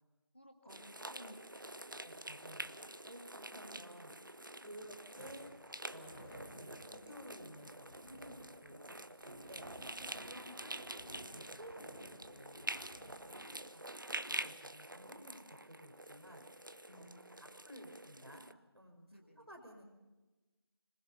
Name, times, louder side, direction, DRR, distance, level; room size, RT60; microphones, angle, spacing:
voice 1, 0.3-2.0 4.6-4.9 8.7-8.9 10.3-10.5 13.2-13.6 16.9-17.5 19.1-19.5, equal, 25° left, 4 dB, 1.8 m, -59 dB
sound 1, 0.7-18.5, right 1 dB, 55° right, 0.8 m, -47 dB
voice 2, 2.0-4.4 4.6-5.5 5.9-9.9 10.3-12.8 13.7-13.9 14.3-16.6 16.9-17.1 17.4-19.8, equal, 80° right, 4 dB, 5.1 m, -55 dB
sound 2, 5.1-13.7, equal, 45° left, 4.3 m, -57 dB
26.0 x 19.5 x 5.6 m, 1.1 s
figure-of-eight pair, 175°, 13 cm